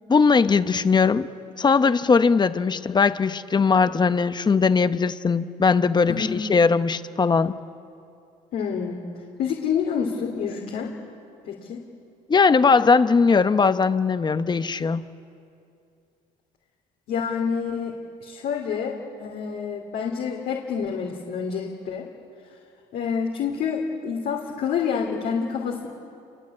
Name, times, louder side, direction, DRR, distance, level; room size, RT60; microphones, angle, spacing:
voice 1, 0.1-1.3 1.6-7.6 12.3-15.1, left 5 dB, 25° left, 11 dB, 0.9 m, -19 dB
voice 2, 8.5-10.9 11.4-11.8 17.1-22.1 22.9-25.9, left 6 dB, 70° left, -1 dB, 3.2 m, -28 dB
28.5 x 22.5 x 8.6 m, 2.6 s
cardioid pair, 110°, 17 cm